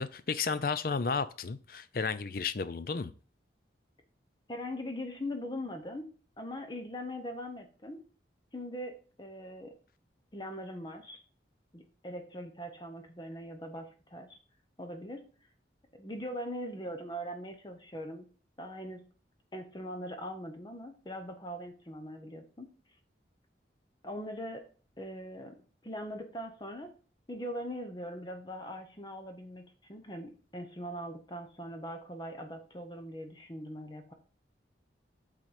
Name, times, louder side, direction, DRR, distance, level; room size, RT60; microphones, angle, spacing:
voice 1, 0.0-3.1, left 5 dB, 50° left, 14 dB, 0.5 m, -33 dB
voice 2, 4.5-6.1 6.4-8.0 8.5-8.9 9.2-9.7 10.3-11.2 11.7-14.4 14.8-15.2 15.9-18.3 18.6-19.0 19.5-22.7 24.0-24.7 25.0-25.5 25.8-26.9 27.3-34.1, equal, 25° left, 6 dB, 0.8 m, -41 dB
7.3 x 4.0 x 4.9 m, 0.39 s
head